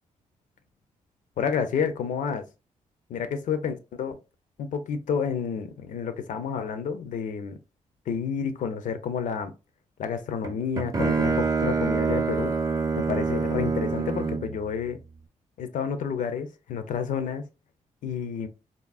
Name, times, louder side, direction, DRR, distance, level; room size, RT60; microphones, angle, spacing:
voice 1, 1.4-2.5 3.1-4.2 4.6-7.6 8.1-9.5 10.0-12.5 13.0-15.0 15.6-17.5 18.0-18.5, left 7 dB, 75° left, 0.5 m, -30 dB
Bowed string instrument, 10.4-14.6, right 4 dB, 25° right, 0.5 m, -26 dB
3.6 x 2.0 x 2.3 m
cardioid pair, 80°, 13 cm